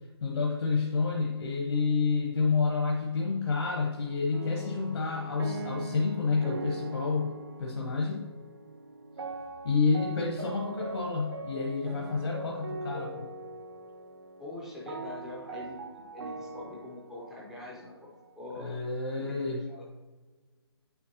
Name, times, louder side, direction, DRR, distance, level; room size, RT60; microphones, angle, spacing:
voice 1, 0.2-8.2 9.6-13.3 18.6-19.6, left 4 dB, 65° left, -1 dB, 0.9 m, -29 dB
sound 1, 4.3-18.3, right 2 dB, 60° right, 0.9 m, -41 dB
voice 2, 14.4-17.9 18.4-18.8 19.3-19.8, left 2 dB, ahead, -6 dB, 0.4 m, -43 dB
8.3 x 4.4 x 2.8 m, 1.3 s
hypercardioid pair, 165°, 14 cm